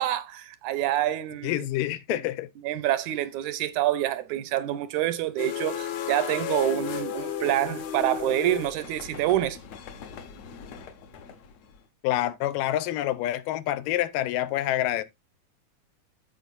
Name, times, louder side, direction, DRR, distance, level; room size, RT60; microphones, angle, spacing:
voice 1, 0.0-1.5 2.1-2.2 2.6-9.6, right 13 dB, 75° right, 1.9 m, -27 dB
voice 2, 1.4-2.5 12.0-15.0, left 14 dB, 85° left, 2.4 m, -27 dB
sound 1, 5.4-11.7, left 10 dB, 65° left, 2.0 m, -35 dB
14.5 x 5.0 x 2.5 m
omnidirectional pair, 3.7 m